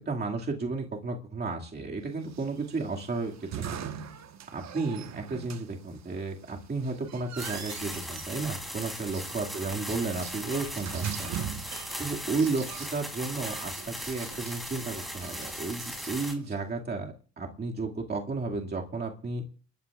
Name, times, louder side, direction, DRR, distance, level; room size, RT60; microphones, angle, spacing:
voice 1, 0.1-3.8 4.5-11.3 12.0-19.4, right 3 dB, 35° right, 0 dB, 2.2 m, -33 dB
sound 1, 2.3-16.6, right 8 dB, 65° right, 1.3 m, -42 dB
sound 2, 7.4-16.3, equal, ahead, 3.3 m, -38 dB
29.5 x 12.5 x 2.4 m, 0.40 s
cardioid pair, 90°, 30 cm